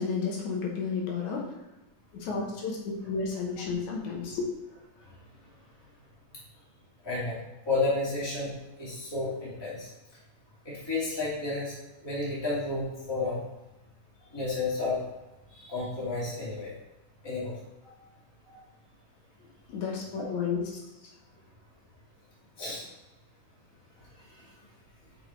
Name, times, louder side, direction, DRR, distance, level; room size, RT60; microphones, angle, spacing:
voice 1, 0.0-1.6 2.1-4.5 19.7-21.2, left 5 dB, 75° left, -1 dB, 2.5 m, -32 dB
voice 2, 7.0-7.4 7.7-9.9 10.6-11.7 12.0-13.4 14.3-15.0 15.5-16.7 17.2-17.6 17.8-17.9 18.5-18.6 20.2-20.3 22.6-22.8 24.3-24.5, left 3 dB, 10° left, -7 dB, 2.0 m, -31 dB
6.0 x 5.4 x 4.4 m, 1.0 s
omnidirectional pair, 3.5 m